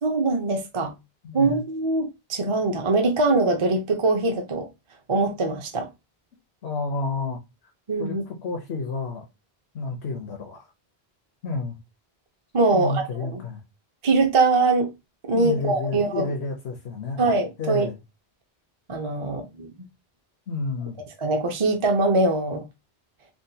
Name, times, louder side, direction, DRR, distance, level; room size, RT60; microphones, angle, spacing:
voice 1, 0.0-0.9 1.3-4.7 5.1-5.9 7.9-8.2 12.5-13.4 14.0-14.9 15.3-16.3 17.2-17.9 18.9-19.7 21.2-22.6, right 3 dB, 40° right, 0.5 m, -22 dB
voice 2, 1.2-1.6 6.6-7.4 8.0-9.2 9.7-10.6 11.4-11.8 12.7-13.6 15.3-17.2 17.6-18.0 20.5-21.0, left 3 dB, 80° left, 1.0 m, -30 dB
3.6 x 2.2 x 2.6 m
omnidirectional pair, 1.1 m